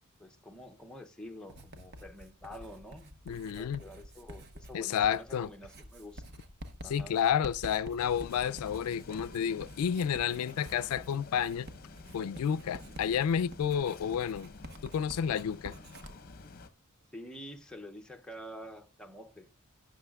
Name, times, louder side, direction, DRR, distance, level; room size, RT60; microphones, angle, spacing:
voice 1, 0.2-6.2 6.8-7.1 12.9-13.0 17.1-19.5, equal, 5° left, 0.6 m, -48 dB
Writing, 1.5-16.1, right 1 dB, 50° right, 0.9 m, -49 dB
voice 2, 3.3-3.8 4.7-5.5 6.8-11.7 12.1-14.5 14.8-15.7, left 8 dB, 80° left, 0.3 m, -30 dB
sound 1, 8.0-16.7, left 3 dB, 40° left, 0.7 m, -50 dB
16.5 x 6.3 x 2.3 m
head